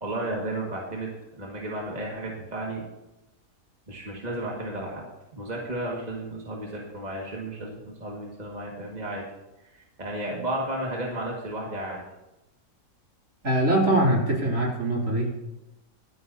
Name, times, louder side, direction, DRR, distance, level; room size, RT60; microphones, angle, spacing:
voice 1, 0.0-2.8 3.9-5.0 5.3-9.2 9.7-12.0, right 1 dB, 25° right, -3 dB, 2.0 m, -33 dB
voice 2, 13.4-15.4, right 1 dB, 50° right, -3 dB, 3.5 m, -23 dB
25.5 x 9.2 x 2.8 m, 0.95 s
omnidirectional pair, 1.8 m